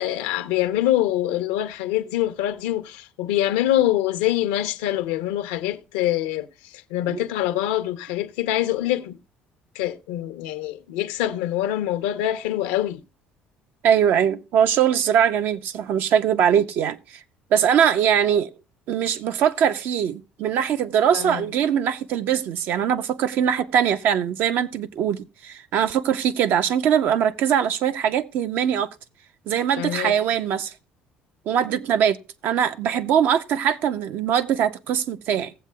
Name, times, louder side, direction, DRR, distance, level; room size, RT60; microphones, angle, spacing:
voice 1, 0.0-6.5 6.9-9.2 9.7-13.0 21.1-21.4 29.8-30.1, left 13 dB, 90° left, 0.7 m, -24 dB
voice 2, 13.8-17.0 17.5-18.5 18.9-28.9 29.5-30.7 31.5-32.2 32.4-35.5, right 8 dB, 65° right, 0.6 m, -21 dB
17.5 x 7.5 x 2.3 m
supercardioid pair, 85°, 4 cm